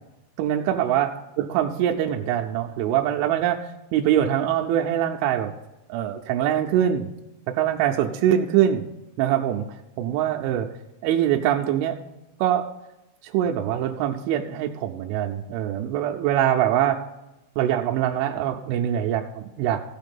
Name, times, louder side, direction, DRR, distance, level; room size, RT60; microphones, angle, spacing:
voice 1, 0.4-5.5 5.9-7.1 7.5-8.8 9.2-9.7 10.0-10.7 11.0-12.0 12.4-12.7 13.2-17.0 17.6-19.8, right 11 dB, 80° right, 2 dB, 2.8 m, -23 dB
16.0 x 5.8 x 5.3 m, 0.97 s
omnidirectional pair, 5.9 m